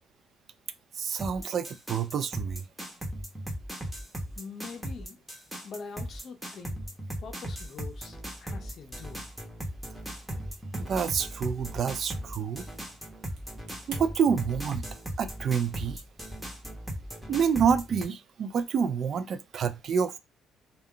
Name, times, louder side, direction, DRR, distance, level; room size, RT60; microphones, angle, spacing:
voice 1, 1.0-2.6 10.7-12.6 13.9-14.8 15.2-16.0 17.3-20.2, right 7 dB, 50° right, 0.3 m, -28 dB
sound 1, 1.2-18.1, equal, 5° right, 0.8 m, -38 dB
voice 2, 4.3-5.2 5.6-6.9 7.2-9.3, left 5 dB, 50° left, 0.6 m, -44 dB
sound 2, 9.9-14.0, right 4 dB, 85° right, 0.9 m, -52 dB
2.3 x 2.1 x 3.6 m
cardioid pair, 110°, 0 cm